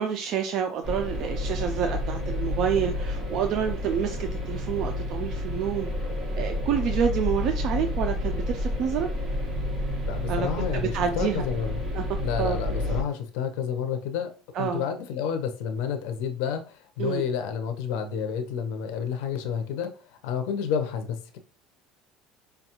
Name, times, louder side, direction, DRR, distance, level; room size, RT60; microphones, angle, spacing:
voice 1, 0.0-5.9 6.4-9.1 10.3-11.5 11.9-12.0 12.4-12.6 14.5-14.8 17.0-17.2, right 8 dB, 45° right, 5 dB, 0.3 m, -28 dB
sound 1, 0.8-13.0, left 1 dB, 20° right, 1.0 m, -30 dB
voice 2, 10.1-11.8 12.2-14.3 14.6-19.9 20.2-21.4, left 7 dB, 75° left, 7 dB, 0.6 m, -30 dB
4.9 x 2.2 x 2.9 m, 0.37 s
cardioid pair, 165°, 0 cm